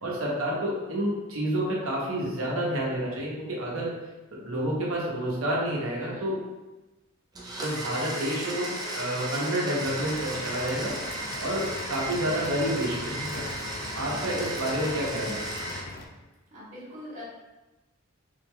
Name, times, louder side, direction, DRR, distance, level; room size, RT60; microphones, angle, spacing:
voice 1, 0.0-3.9 4.3-6.4 7.6-8.7 9.0-13.5 13.9-15.4, right 1 dB, 80° right, -4 dB, 0.9 m, -29 dB
Domestic sounds home sounds, 7.3-15.8, right 1 dB, 20° right, 0.5 m, -35 dB
sound 1, 9.8-16.1, left 3 dB, 45° left, 0.4 m, -41 dB
voice 2, 16.5-17.2, equal, 35° right, -8 dB, 1.5 m, -43 dB
3.4 x 3.4 x 2.2 m, 1.1 s
head